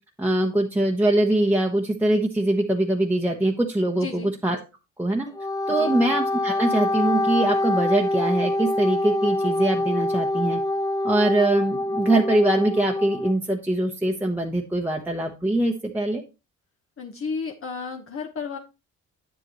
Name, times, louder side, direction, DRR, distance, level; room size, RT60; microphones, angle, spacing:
voice 1, 0.2-4.6 5.0-5.3 5.7-10.6 11.0-16.2, right 1 dB, 5° right, 0 dB, 1.0 m, -23 dB
voice 2, 3.9-4.3 5.7-6.0 17.0-18.6, left 5 dB, 45° left, 2 dB, 1.2 m, -33 dB
Wind instrument woodwind instrument, 5.3-13.3, left 1 dB, 10° left, 0.4 m, -25 dB
8.7 x 7.6 x 3.0 m, 0.28 s
cardioid pair, 90°, 30 cm